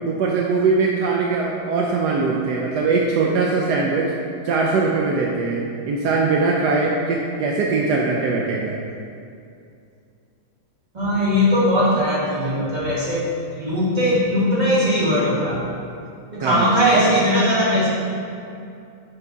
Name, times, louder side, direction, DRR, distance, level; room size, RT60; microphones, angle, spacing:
voice 1, 0.0-4.1 4.4-8.8 16.4-16.7 16.9-17.0, right 4 dB, 75° right, -1 dB, 0.9 m, -21 dB
voice 2, 10.9-13.2 13.5-15.6 16.3-17.9, equal, 20° right, -6 dB, 1.6 m, -19 dB
5.7 x 5.4 x 5.2 m, 2.5 s
omnidirectional pair, 2.4 m